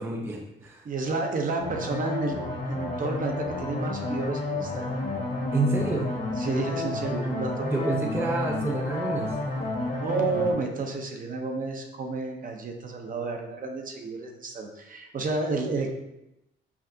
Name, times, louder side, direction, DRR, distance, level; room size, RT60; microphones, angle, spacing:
voice 1, 0.0-0.9 5.5-6.1 7.6-9.4, right 2 dB, 10° right, 0 dB, 0.4 m, -28 dB
voice 2, 0.8-2.4 2.7-4.9 6.4-7.9 9.9-15.9, right 3 dB, 45° right, 2 dB, 0.7 m, -31 dB
sound 1, 1.6-10.5, left 2 dB, 45° left, 1.2 m, -31 dB
5.7 x 2.4 x 2.7 m, 0.89 s
cardioid pair, 90°, 20 cm